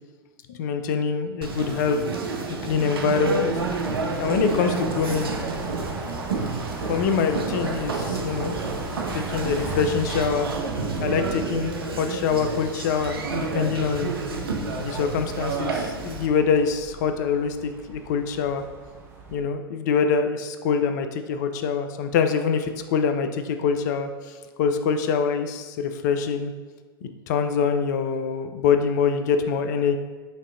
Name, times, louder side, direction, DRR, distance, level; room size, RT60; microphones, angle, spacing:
voice 1, 0.5-2.0 2.6-3.5 4.2-5.3 6.9-8.5 9.1-10.5 11.0-14.1 14.8-18.6 19.3-26.5 27.0-30.0, left 6 dB, 50° left, 8 dB, 0.3 m, -24 dB
Conversation, 1.4-16.3, right 3 dB, 70° right, 0.5 m, -30 dB
sound 1, 2.2-19.4, right 4 dB, 20° right, 0.5 m, -38 dB
5.1 x 2.6 x 2.5 m, 1.4 s
figure-of-eight pair, 95°, 13 cm